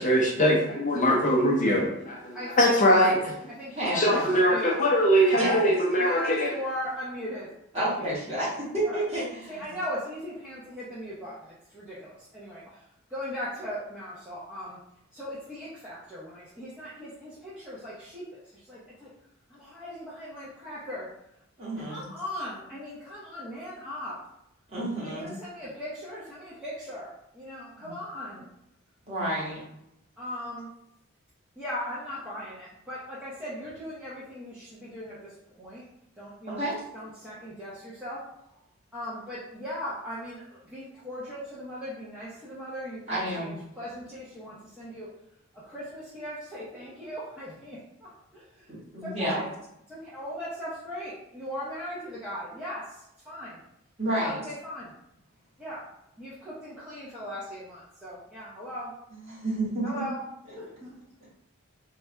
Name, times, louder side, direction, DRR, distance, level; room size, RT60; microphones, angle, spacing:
voice 1, 0.0-3.2 3.9-6.5, equal, 35° left, -1 dB, 0.5 m, -22 dB
voice 2, 2.3-3.1 3.6-4.8 5.2-5.6 6.0-8.1 8.4-8.5 8.8-9.0 9.5-14.8 15.1-19.1 19.5-21.1 21.8-24.2 24.9-28.5 30.2-30.7 31.6-35.8 36.2-36.6 36.9-38.2 38.9-45.1 45.6-48.7 49.0-49.4 49.9-53.6 54.2-54.9 55.6-55.8 56.2-58.9 59.8-60.2 60.6-61.0, equal, 5° right, -11 dB, 0.7 m, -38 dB
voice 3, 3.8-4.3 5.3-5.7 7.7-9.6 21.6-22.0 24.7-25.3 27.7-27.9 29.0-29.6 36.6-36.7 43.1-43.5 48.7-49.4 54.0-54.4 59.1-59.9, right 1 dB, 30° right, -8 dB, 1.4 m, -30 dB
3.4 x 2.3 x 4.2 m, 0.81 s
head